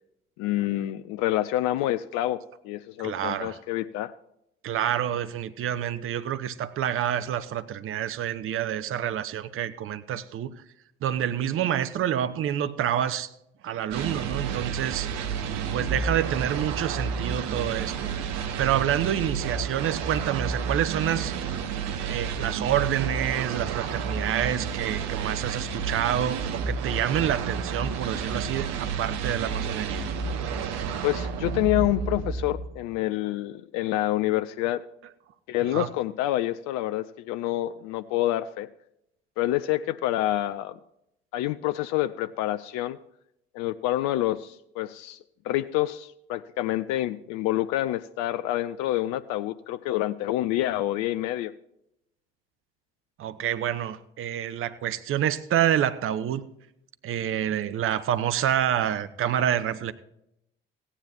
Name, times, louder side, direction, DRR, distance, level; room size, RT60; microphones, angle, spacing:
voice 1, 0.4-4.1 31.0-34.8 35.5-38.7 39.4-40.8 41.3-43.0 43.5-45.2 45.4-51.5, left 15 dB, 65° left, 13 dB, 0.5 m, -27 dB
voice 2, 3.0-3.6 4.6-10.6 11.0-13.3 13.6-15.1 15.7-18.1 18.6-21.3 22.1-30.0 35.7-35.9 53.2-56.4 57.0-59.9, right 10 dB, 45° right, 13 dB, 0.8 m, -28 dB
sound 1, 13.9-32.9, right 6 dB, 65° right, 1.1 m, -31 dB
16.5 x 9.9 x 2.9 m, 0.79 s
hypercardioid pair, 55°, 29 cm